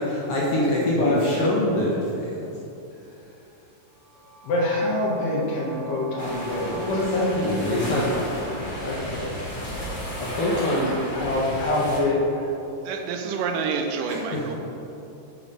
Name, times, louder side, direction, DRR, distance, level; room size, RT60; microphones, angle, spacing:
voice 1, 0.0-2.6 3.0-3.3 6.6-8.0 10.2-10.9 14.1-14.4, left 1 dB, 65° left, -6 dB, 1.5 m, -25 dB
sound 1, 3.8-11.8, right 4 dB, 45° right, 2.0 m, -46 dB
voice 2, 4.4-9.4 11.1-12.5, left 1 dB, 80° left, -3 dB, 3.0 m, -26 dB
sound 2, 6.2-12.0, equal, 35° left, 0.7 m, -33 dB
voice 3, 12.9-14.6, right 5 dB, 80° right, 4 dB, 2.1 m, -28 dB
7.1 x 4.9 x 5.4 m, 2.9 s
omnidirectional pair, 3.8 m